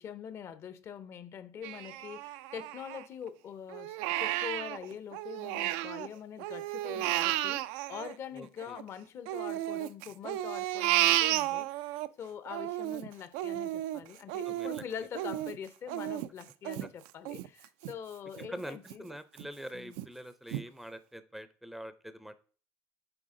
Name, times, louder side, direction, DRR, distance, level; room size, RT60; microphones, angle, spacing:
voice 1, 0.0-19.1 19.7-20.0, left 8 dB, 45° left, 0.6 m, -44 dB
Crying sobbing, 1.6-3.3 3.7-6.1 6.4-8.8 9.3-12.1 12.5-17.9 18.4-18.5 18.9-19.5 20.0-20.1 20.5-20.6, right 15 dB, 90° right, 0.4 m, -33 dB
voice 2, 8.3-8.8 14.4-14.8 18.5-22.4, equal, 5° right, 0.5 m, -44 dB
7.8 x 4.1 x 3.7 m
cardioid pair, 120°, 6 cm